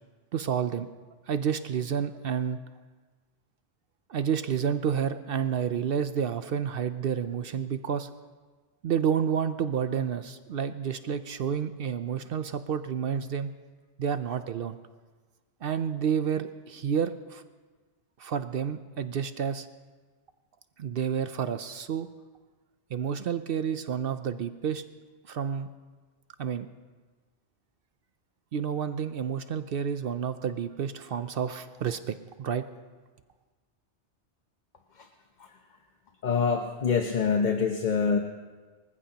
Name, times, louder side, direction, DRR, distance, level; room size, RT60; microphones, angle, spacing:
voice 1, 0.3-0.9 1.3-2.6 4.1-8.1 8.8-13.5 14.0-14.8 15.6-17.4 18.2-19.7 20.8-22.1 22.9-24.8 25.3-25.7 26.4-26.7 28.5-32.6, right 7 dB, 60° right, 11 dB, 0.7 m, -30 dB
voice 2, 36.2-38.2, left 5 dB, 45° left, 4 dB, 0.9 m, -25 dB
25.0 x 14.5 x 2.9 m, 1.4 s
omnidirectional pair, 1.2 m